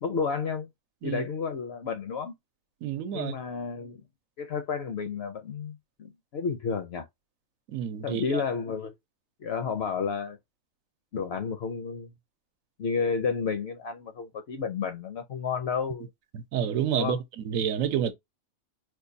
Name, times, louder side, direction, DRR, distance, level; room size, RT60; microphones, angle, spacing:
voice 1, 0.0-0.7 1.0-2.3 3.1-4.0 4.4-7.1 8.0-8.9 9.4-10.4 11.1-12.1 12.8-16.1 16.9-17.2, left 5 dB, 65° left, 0.7 m, -31 dB
voice 2, 2.8-3.3 7.7-8.4 16.3-18.1, right 9 dB, 75° right, 1.0 m, -29 dB
4.5 x 2.2 x 2.5 m
omnidirectional pair, 1.4 m